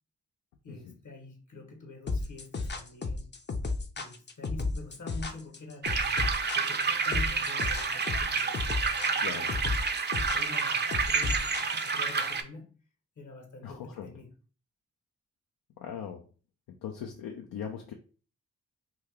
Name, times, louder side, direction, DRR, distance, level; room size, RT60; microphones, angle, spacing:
voice 1, 0.6-3.3 4.0-9.6 10.1-12.8 13.2-14.3, left 3 dB, 55° left, 1.1 m, -47 dB
sound 1, 2.1-12.1, left 3 dB, 30° left, 0.6 m, -33 dB
sound 2, 5.8-12.4, right 5 dB, 30° right, 0.5 m, -29 dB
voice 2, 13.6-14.1 15.8-16.2 16.8-17.9, left 8 dB, 75° left, 0.5 m, -40 dB
3.0 x 2.3 x 3.5 m
supercardioid pair, 45°, 35 cm